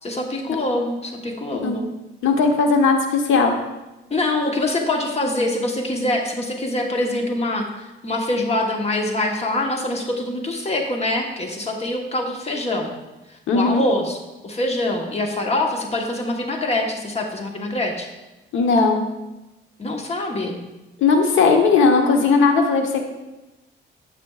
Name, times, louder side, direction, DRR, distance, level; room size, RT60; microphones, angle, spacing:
voice 1, 0.0-1.9 4.1-12.9 13.3-14.2 14.4-18.1 19.8-20.6, left 1 dB, 30° left, 2 dB, 1.2 m, -24 dB
voice 2, 2.2-3.5 13.5-13.8 18.5-19.0 21.0-23.0, left 4 dB, 80° left, 4 dB, 1.1 m, -17 dB
9.5 x 6.8 x 2.4 m, 1.0 s
cardioid pair, 90°, 20 cm